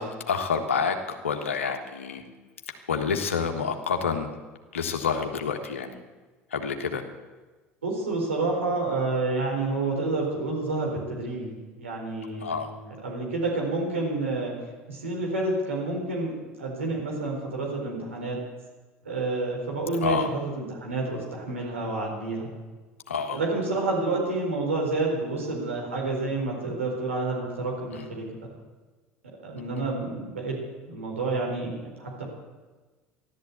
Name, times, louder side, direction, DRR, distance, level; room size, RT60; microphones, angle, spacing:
voice 1, 0.0-2.2 2.9-4.3 4.7-5.9 6.5-7.0 12.3-12.7 20.0-20.3 23.1-23.4 27.9-28.1, left 6 dB, 85° left, 5 dB, 1.5 m, -28 dB
voice 2, 7.8-14.5 14.9-16.3 16.6-18.4 19.0-22.5 23.3-28.2 29.4-30.6 30.9-32.2, right 3 dB, 85° right, -2 dB, 4.3 m, -29 dB
14.0 x 12.0 x 8.4 m, 1.3 s
hypercardioid pair, 65°, 7 cm